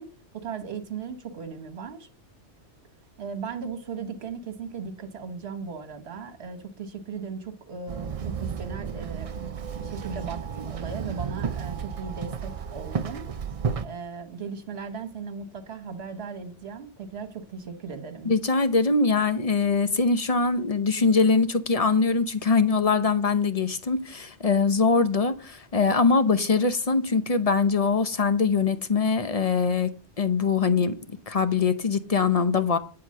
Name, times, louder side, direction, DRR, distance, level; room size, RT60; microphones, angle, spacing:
voice 1, 0.0-2.1 3.2-9.3 9.8-13.3 13.8-18.3, right 5 dB, 60° right, 1.5 m, -37 dB
Walk footsteps / Chatter / Hiss, 7.9-13.8, right 6 dB, 40° right, 0.5 m, -32 dB
voice 2, 18.2-30.9 31.3-32.8, left 4 dB, 35° left, 0.8 m, -23 dB
9.8 x 4.8 x 7.5 m
omnidirectional pair, 1.2 m